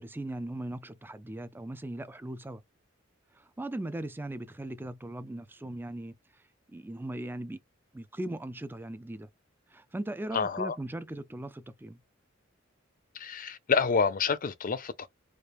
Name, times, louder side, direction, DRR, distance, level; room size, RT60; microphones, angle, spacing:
voice 1, 0.0-2.6 3.3-6.4 6.7-7.6 7.9-9.3 9.7-12.0, right 1 dB, 10° right, 0.4 m, -39 dB
voice 2, 10.3-10.8 13.1-15.1, left 5 dB, 45° left, 0.5 m, -28 dB
4.9 x 2.4 x 3.0 m
head